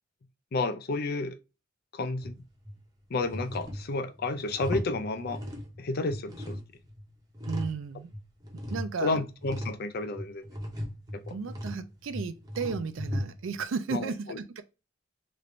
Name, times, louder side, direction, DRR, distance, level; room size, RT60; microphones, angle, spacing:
voice 1, 0.5-1.4 1.9-2.4 3.1-5.4 5.8-6.6 9.0-10.4 11.1-11.4 13.9-14.4, left 3 dB, 50° left, 0.4 m, -31 dB
sound 1, 2.2-2.8 3.2-5.8 6.1-7.8 8.1-13.6, equal, 20° right, 0.7 m, -37 dB
voice 2, 7.5-8.1 8.7-9.2 11.3-14.6, right 5 dB, 70° right, 0.4 m, -34 dB
3.1 x 2.5 x 3.1 m
head